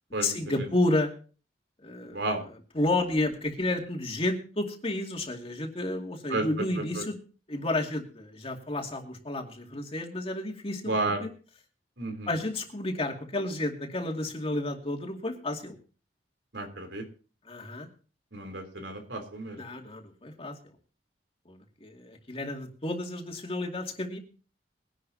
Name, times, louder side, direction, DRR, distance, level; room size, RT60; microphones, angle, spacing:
voice 1, 0.2-1.1 1.8-2.2 2.7-7.1 7.5-10.9 11.2-11.3 12.3-15.8 17.5-17.9 19.6-20.6 21.5-24.2, left 2 dB, 35° left, 2 dB, 2.4 m, -31 dB
voice 2, 2.1-2.4 6.3-6.4 6.8-7.0 10.8-11.2 12.0-12.3 16.5-17.0 18.3-19.6, right 2 dB, 85° right, 5 dB, 3.4 m, -32 dB
22.0 x 11.5 x 2.8 m, 0.37 s
head